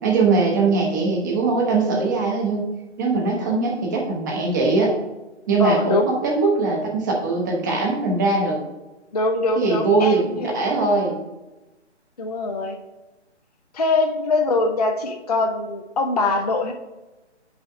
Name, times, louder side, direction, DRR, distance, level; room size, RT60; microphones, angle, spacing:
voice 1, 0.0-2.7 3.0-4.9 5.5-8.6 9.6-10.2 10.5-11.1, right 3 dB, 15° right, 0 dB, 0.7 m, -21 dB
voice 2, 5.6-6.1 9.1-10.6 12.2-12.8 13.7-16.7, left 3 dB, 35° left, 4 dB, 0.4 m, -22 dB
9.0 x 5.6 x 2.6 m, 1.1 s
figure-of-eight pair, 140°, 35 cm